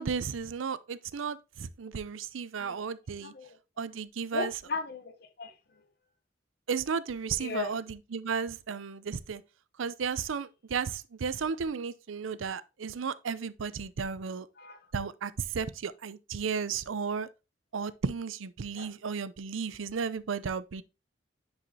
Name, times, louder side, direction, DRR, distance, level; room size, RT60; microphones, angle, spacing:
voice 1, 0.0-3.3 3.8-4.5 6.7-7.8 8.1-9.4 9.8-14.5 14.9-17.3 17.7-20.8, right 6 dB, 90° right, 0.5 m, -34 dB
voice 2, 3.2-3.6 4.3-5.8 7.4-7.8 14.6-14.8 18.7-18.9, left 3 dB, 50° left, 0.8 m, -37 dB
10.0 x 4.9 x 2.7 m
head